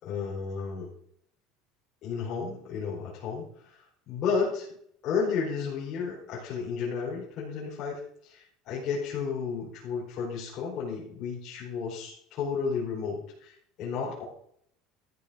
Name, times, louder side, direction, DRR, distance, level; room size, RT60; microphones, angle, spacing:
voice 1, 0.0-0.9 2.0-3.8 4.1-4.7 5.0-14.2, left 5 dB, 35° left, -7 dB, 4.5 m, -32 dB
14.0 x 6.8 x 6.3 m, 0.65 s
cardioid pair, 175°, 0 cm